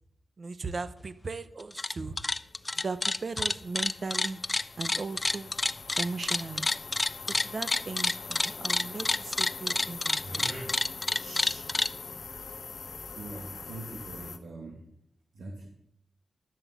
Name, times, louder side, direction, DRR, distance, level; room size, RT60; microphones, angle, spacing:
voice 1, 0.4-2.2 2.8-4.4 4.8-5.5 6.0-6.7 7.3-10.5, right 3 dB, 40° right, 13 dB, 0.7 m, -37 dB
sound 1, 1.6-1.9 2.2-11.9, left 2 dB, 20° left, 0.3 m, -28 dB
sound 2, 2.2-14.4, left 4 dB, 55° left, 1.2 m, -43 dB
sound 3, 5.2-13.2, right 1 dB, 70° right, 5.3 m, -47 dB
voice 2, 13.2-14.8 15.4-15.7, right 2 dB, 85° right, 1 dB, 1.9 m, -42 dB
12.0 x 7.6 x 7.1 m, 0.73 s
wide cardioid pair, 155°, 0 cm